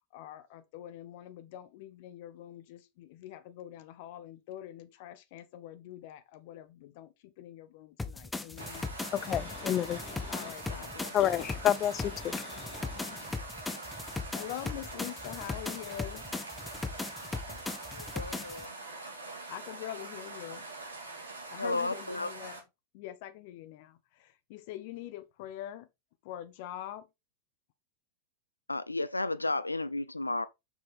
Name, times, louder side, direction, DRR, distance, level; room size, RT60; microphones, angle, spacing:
voice 1, 0.0-8.9 10.3-11.4 13.1-13.4 14.3-16.2 19.5-20.7 21.5-22.6 22.9-25.9 26.2-27.1, left 12 dB, 50° left, 1.0 m, -44 dB
sound 1, 8.0-18.7, left 3 dB, 10° left, 0.9 m, -39 dB
sound 2, 8.6-22.6, right 3 dB, 75° right, 3.0 m, -44 dB
voice 2, 9.1-10.3 11.1-13.2, left 11 dB, 30° left, 0.6 m, -31 dB
voice 3, 17.9-18.8 21.6-22.3 28.7-30.5, left 2 dB, 85° left, 0.6 m, -33 dB
7.5 x 6.1 x 3.5 m
figure-of-eight pair, 90°, 0 cm